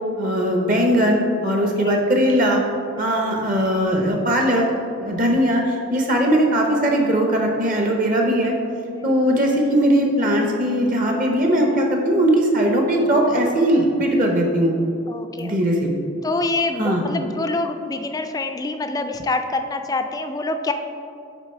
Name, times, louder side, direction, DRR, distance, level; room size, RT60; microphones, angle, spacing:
voice 1, 0.1-2.6 3.0-4.6 5.0-8.5 9.0-14.7 15.3-15.9 16.8-17.0, equal, 40° right, 1 dB, 0.8 m, -19 dB
voice 2, 1.6-2.0 2.9-3.1 8.9-9.2 15.1-15.8 16.2-20.7, left 2 dB, 20° left, 7 dB, 0.3 m, -26 dB
8.1 x 4.0 x 4.5 m, 2.5 s
head